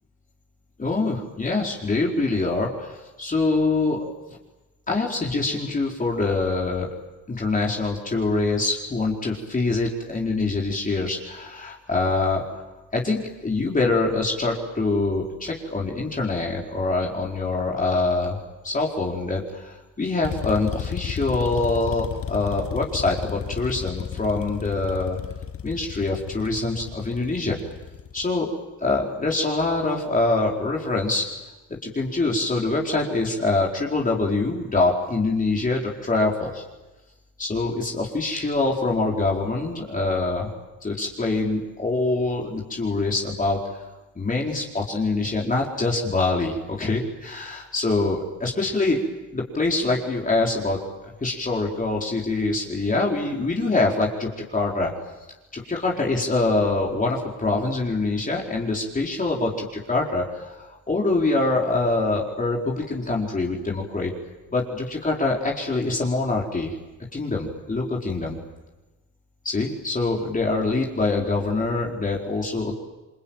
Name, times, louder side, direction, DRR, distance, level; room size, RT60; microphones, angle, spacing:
voice 1, 0.8-4.4 4.9-6.9 7.3-12.4 12.9-18.4 18.6-25.2 25.6-27.6 28.1-28.5 28.8-31.2 31.8-36.6 37.4-40.5 40.8-43.6 44.2-49.0 49.3-50.8 51.0-54.9 55.5-64.1 64.5-66.7 67.1-68.4 69.4-72.7, left 3 dB, 25° left, -2 dB, 4.6 m, -24 dB
sound 1, 20.2-28.3, left 8 dB, 50° left, 1.3 m, -34 dB
28.0 x 23.0 x 9.1 m, 1.1 s
cardioid pair, 90°, 30 cm